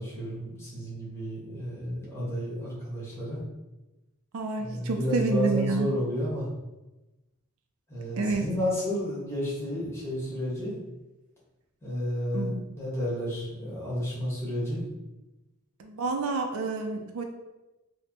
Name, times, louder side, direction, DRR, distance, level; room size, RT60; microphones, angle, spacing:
voice 1, 0.0-3.4 4.6-6.5 7.9-10.8 11.8-14.8, equal, 10° left, -7 dB, 1.3 m, -31 dB
voice 2, 4.3-5.9 8.1-8.4 12.3-12.6 15.8-17.2, right 3 dB, 75° right, 4 dB, 0.4 m, -28 dB
5.0 x 2.1 x 2.8 m, 1.0 s
head